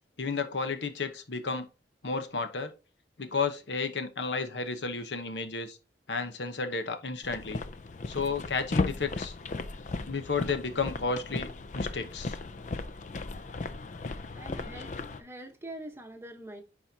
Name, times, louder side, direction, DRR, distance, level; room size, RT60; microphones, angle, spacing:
voice 1, 0.2-1.7 2.0-2.7 3.2-5.8 6.1-7.6 8.1-9.3 10.0-11.5 11.7-12.4, left 4 dB, 80° left, 0.9 m, -32 dB
sound 1, 7.2-15.2, left 3 dB, 45° left, 0.4 m, -36 dB
voice 2, 14.3-14.9 15.2-16.6, right 1 dB, 15° right, 1.0 m, -43 dB
10.5 x 4.2 x 2.8 m
head